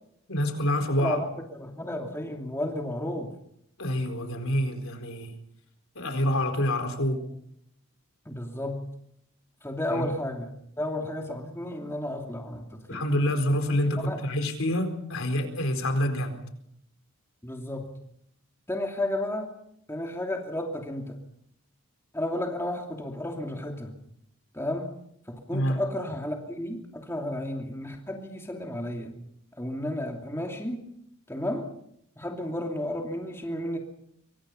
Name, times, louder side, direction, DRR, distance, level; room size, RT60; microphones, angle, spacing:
voice 1, 0.3-1.2 3.8-5.3 5.9-7.2 9.9-10.1 12.9-16.3 25.5-25.8, left 1 dB, 65° left, 7 dB, 4.4 m, -27 dB
voice 2, 1.0-3.3 8.2-8.9 9.6-13.0 14.0-14.2 17.4-18.0 18.7-19.5 19.9-21.2 22.1-23.9 24.5-24.9 25.3-29.1 29.6-30.9 31.3-31.7 32.2-33.8, left 1 dB, 10° left, 2 dB, 2.7 m, -32 dB
26.0 x 24.5 x 5.6 m, 0.73 s
head